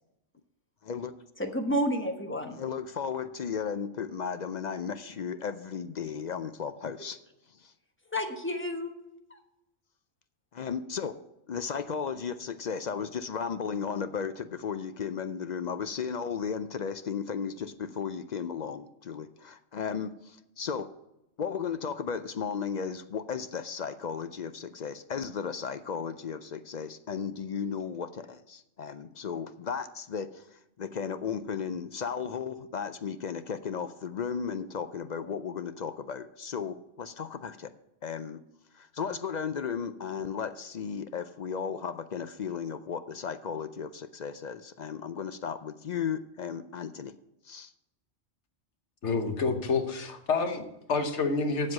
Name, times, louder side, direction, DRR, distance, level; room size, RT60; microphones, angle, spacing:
voice 1, 0.8-1.1 2.5-7.2 7.5-7.7 10.5-11.1 11.5-20.9 21.4-37.7 38.0-38.4 38.7-47.1 47.4-47.7, left 6 dB, 55° left, 11 dB, 0.5 m, -35 dB
voice 2, 1.4-2.6 8.1-8.9 9.3-9.4, equal, 10° left, 4 dB, 1.1 m, -30 dB
voice 3, 49.0-51.7, left 4 dB, 75° left, 7 dB, 1.4 m, -28 dB
7.8 x 7.5 x 7.3 m, 0.87 s
omnidirectional pair, 1.2 m